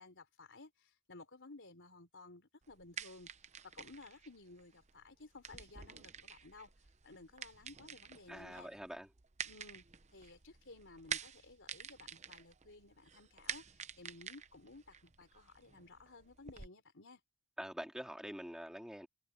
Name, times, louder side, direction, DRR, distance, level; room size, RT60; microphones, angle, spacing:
voice 1, 0.0-3.3 3.6-6.7 7.0-8.7 9.5-9.8 10.1-17.2, left 3 dB, 55° left, 4.3 m, -56 dB
sound 1, 2.6-16.7, right 7 dB, 30° right, 0.8 m, -49 dB
voice 2, 8.3-9.1 17.6-19.1, equal, 5° right, 2.4 m, -45 dB
head